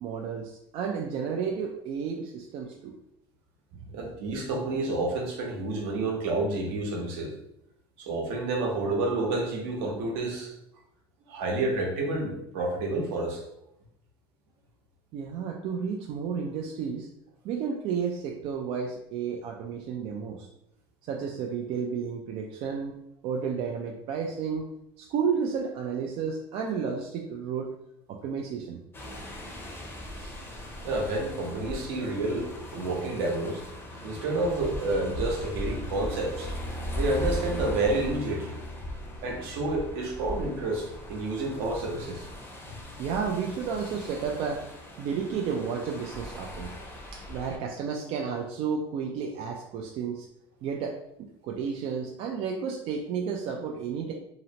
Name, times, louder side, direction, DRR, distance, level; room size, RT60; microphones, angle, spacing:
voice 1, 0.0-2.9 3.7-3.8 15.1-17.1 17.4-20.5 21.0-24.7 25.0-27.7 28.1-28.8 43.0-44.6 45.0-46.7 47.1-50.3 50.6-51.0 51.4-54.1, right 6 dB, 50° right, 1 dB, 0.4 m, -32 dB
voice 2, 3.9-7.3 8.0-10.5 11.3-13.4 30.2-30.6 30.8-33.6 34.0-36.5 36.9-38.6 39.2-42.2, right 2 dB, 70° right, 0 dB, 0.9 m, -29 dB
sound 1, 28.9-47.6, left 1 dB, 15° left, 0.6 m, -38 dB
2.8 x 2.0 x 2.8 m, 0.80 s
supercardioid pair, 105°, 13 cm